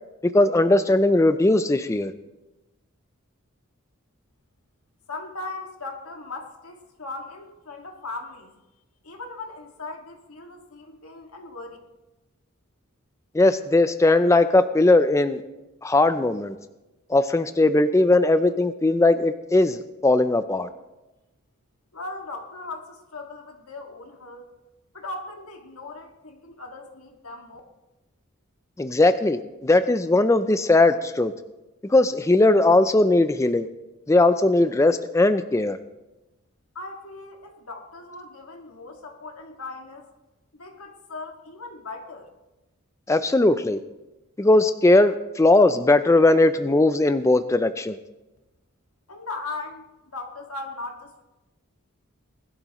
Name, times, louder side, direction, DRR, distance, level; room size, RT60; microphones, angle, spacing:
voice 1, 0.3-2.1 13.3-15.4 15.8-16.5 17.1-20.7 28.8-31.3 31.9-33.7 34.1-35.8 43.1-43.8 44.4-48.0, left 2 dB, 15° left, 11 dB, 0.3 m, -19 dB
voice 2, 5.1-8.5 9.0-11.8 21.9-24.5 24.9-27.6 36.8-40.1 40.5-42.3 49.1-49.8 50.1-51.2, left 3 dB, 85° left, 2 dB, 2.0 m, -38 dB
20.0 x 12.0 x 3.0 m, 1.0 s
head